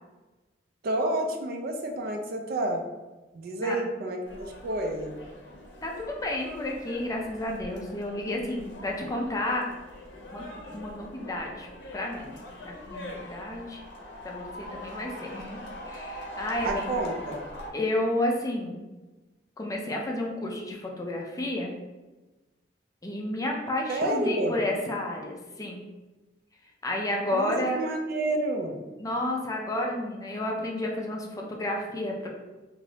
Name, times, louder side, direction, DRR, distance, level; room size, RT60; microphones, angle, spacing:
voice 1, 0.8-2.8 3.3-5.1 16.6-17.4 23.9-24.6 27.3-28.8, right 1 dB, 55° right, 3 dB, 0.4 m, -29 dB
sound 1, 4.3-17.7, left 1 dB, 75° left, 0.6 m, -42 dB
voice 2, 5.8-9.7 10.3-10.4 10.7-13.8 14.2-17.0 17.7-18.8 19.6-21.7 23.0-25.8 26.8-27.8 29.0-32.3, left 1 dB, 20° left, 0 dB, 0.4 m, -31 dB
2.6 x 2.6 x 3.2 m, 1.2 s
head